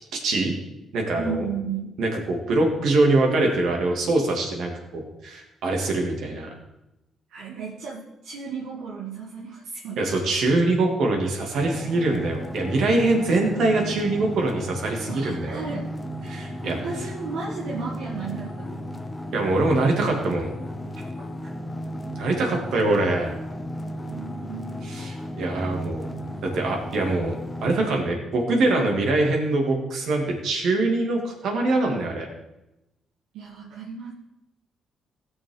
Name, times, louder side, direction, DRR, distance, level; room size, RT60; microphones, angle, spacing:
voice 1, 0.1-0.5 0.9-1.4 2.0-6.5 10.0-15.6 16.3-16.8 19.3-20.5 22.2-23.3 24.8-26.1 26.5-27.3 27.6-32.3, right 2 dB, 75° right, 1 dB, 2.6 m, -23 dB
voice 2, 1.2-1.9 7.3-10.0 15.1-16.0 16.6-19.0 24.1-24.9 33.3-34.1, right 5 dB, 90° right, -5 dB, 1.7 m, -34 dB
sound 1, 11.6-27.7, equal, 15° left, 0.9 m, -34 dB
16.5 x 6.2 x 4.0 m, 0.93 s
cardioid pair, 90°, 0 cm